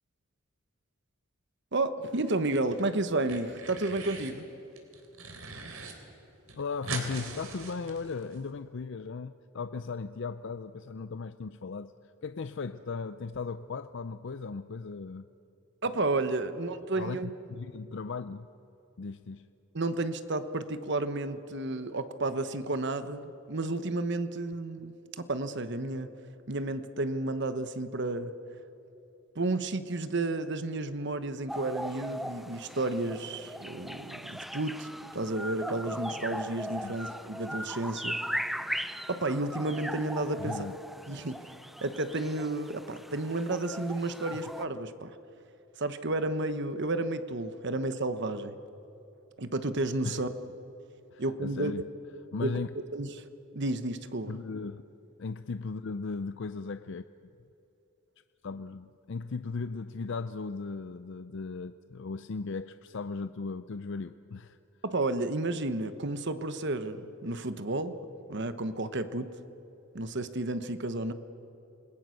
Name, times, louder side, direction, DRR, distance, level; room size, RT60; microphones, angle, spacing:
voice 1, 1.7-4.5 15.8-17.3 19.7-26.1 26.5-28.3 29.3-38.2 39.1-40.7 41.1-41.4 41.8-45.2 45.8-48.5 49.4-50.3 51.2-51.8 52.4-52.5 52.9-53.2 53.5-54.3 64.8-68.0 68.3-69.3 69.9-71.1, right 2 dB, 50° right, 11 dB, 1.1 m, -32 dB
sound 1, 2.1-2.8 3.1-4.4 4.7-5.9 6.2-6.3 6.5-8.4, right 4 dB, 75° right, 3.4 m, -41 dB
voice 2, 6.6-11.9 12.2-15.3 17.0-18.5 19.0-19.5 36.8-37.0 40.4-40.8 50.0-50.2 51.1-51.9 52.3-52.7 54.3-54.8 55.2-57.0 58.4-64.6, left 4 dB, 55° left, 11 dB, 0.5 m, -37 dB
sound 2, 31.5-44.7, equal, ahead, 0.5 m, -39 dB
28.0 x 21.0 x 6.5 m, 3.0 s
head